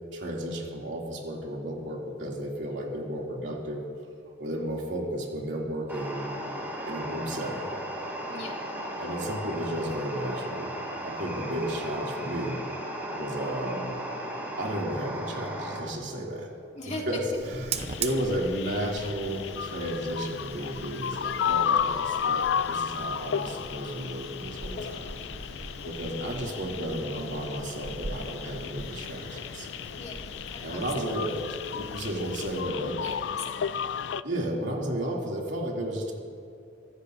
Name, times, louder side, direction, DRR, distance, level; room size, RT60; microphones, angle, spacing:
voice 1, 0.1-3.8 4.4-6.3 6.9-7.7 9.0-10.7 11.0-12.6 13.2-13.9 14.6-16.5 16.8-25.1 25.8-29.7 30.6-33.0 34.2-36.1, right 1 dB, 80° right, -2 dB, 2.7 m, -33 dB
AM Radio Noise, 5.9-15.8, right 1 dB, 10° right, 3.5 m, -36 dB
voice 2, 8.3-8.6 16.7-17.1 30.0-31.1 33.0-33.8, left 2 dB, 35° left, -1 dB, 2.2 m, -41 dB
Fire, 17.3-33.4, right 4 dB, 35° right, 0.7 m, -42 dB
sound 1, 17.7-34.2, left 8 dB, 70° left, 0.4 m, -33 dB
24.5 x 16.0 x 2.7 m, 2.5 s
head